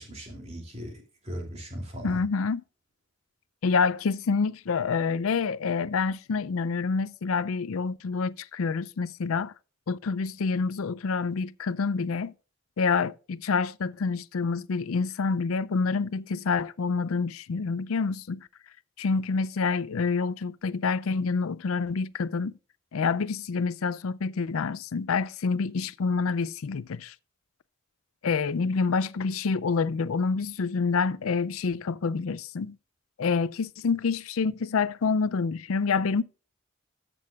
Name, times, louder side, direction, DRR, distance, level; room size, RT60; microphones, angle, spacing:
voice 1, 0.0-2.2, equal, 30° right, 2.9 m, -38 dB
voice 2, 2.0-2.6 3.6-9.5 9.9-12.3 12.8-18.5 19.0-22.6 22.9-27.1 28.2-32.8 33.2-36.2, left 4 dB, 90° left, 0.5 m, -27 dB
14.0 x 7.8 x 2.4 m
head